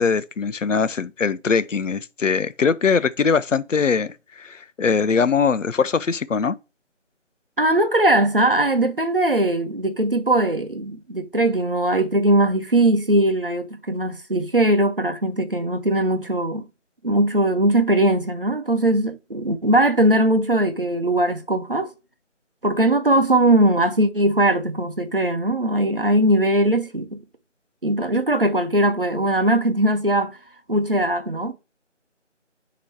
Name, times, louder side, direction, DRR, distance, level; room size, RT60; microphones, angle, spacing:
voice 1, 0.0-6.6, left 5 dB, 85° left, 0.6 m, -21 dB
voice 2, 7.6-16.7 17.0-21.9 22.6-27.2 27.8-30.4 30.7-31.5, right 1 dB, 45° right, 0.8 m, -20 dB
7.1 x 3.0 x 4.6 m
figure-of-eight pair, 175°, 37 cm